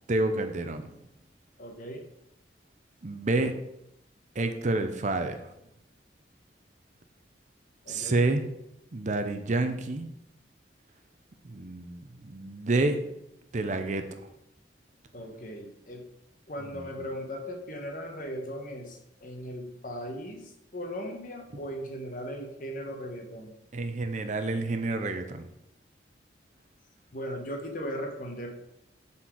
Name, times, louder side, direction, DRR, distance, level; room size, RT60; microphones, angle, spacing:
voice 1, 0.1-0.8 3.0-3.5 4.4-5.4 7.9-8.4 8.9-10.1 11.4-13.0 13.5-14.0 16.7-16.9 23.7-25.5, right 2 dB, 45° right, 7 dB, 0.6 m, -28 dB
voice 2, 1.6-2.0 7.8-8.2 15.1-16.0 16.5-20.4 20.7-23.5 27.1-28.5, equal, 50° left, 2 dB, 1.2 m, -38 dB
7.5 x 4.4 x 4.6 m, 0.83 s
head